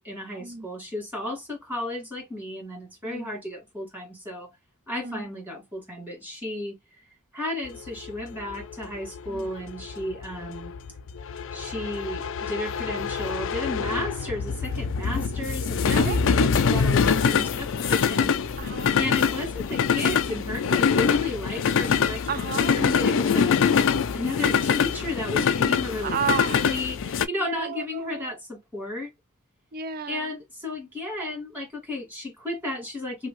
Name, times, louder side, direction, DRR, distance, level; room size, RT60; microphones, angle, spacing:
voice 1, 0.0-4.5 4.9-6.8 7.3-10.7 11.5-18.3 19.0-22.3 22.7-23.6 24.1-26.2 26.7-29.1 30.1-33.3, left 1 dB, 10° right, 1.7 m, -33 dB
sound 1, 7.7-27.3, left 6 dB, 60° left, 0.5 m, -24 dB
voice 2, 16.0-16.3 18.6-19.0 22.3-22.8 26.0-26.8 27.4-28.3 29.7-30.3, right 7 dB, 40° right, 0.4 m, -33 dB
2.9 x 2.6 x 3.0 m
head